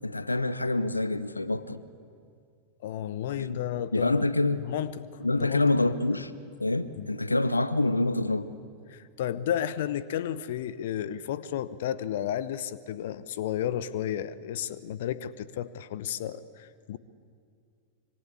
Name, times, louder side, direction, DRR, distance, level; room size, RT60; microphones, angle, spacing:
voice 1, 0.0-1.8 3.4-3.6 3.9-4.7 5.2-6.3 6.6-8.5, left 2 dB, 80° left, 15 dB, 0.8 m, -26 dB
voice 2, 2.8-4.2 4.6-5.1 5.3-5.6 7.0-7.1 8.9-17.0, left 10 dB, 55° left, 16 dB, 0.8 m, -32 dB
26.0 x 24.5 x 8.6 m, 2.3 s
figure-of-eight pair, 90°, 0 cm